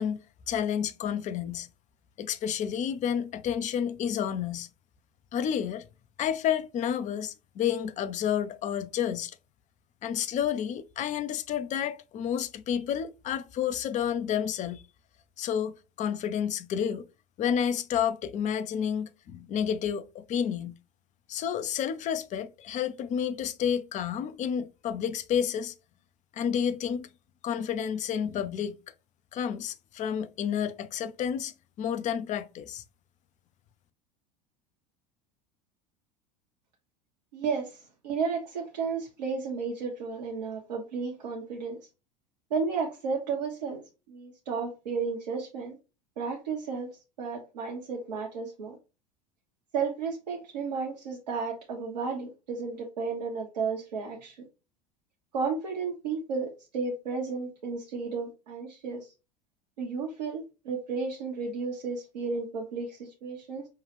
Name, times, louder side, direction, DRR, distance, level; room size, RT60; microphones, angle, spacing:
voice 1, 0.0-1.7 2.2-4.7 5.3-5.9 6.2-9.4 10.0-14.8 15.4-17.1 17.4-20.8 21.3-25.7 26.3-27.1 27.4-28.8 29.3-32.8, left 8 dB, 35° left, 0.6 m, -30 dB
voice 2, 37.3-41.8 42.5-45.8 46.2-48.8 49.7-54.5 55.3-59.1 59.8-63.7, right 5 dB, 75° right, 1.0 m, -33 dB
5.4 x 2.3 x 3.3 m
figure-of-eight pair, 75°, 21 cm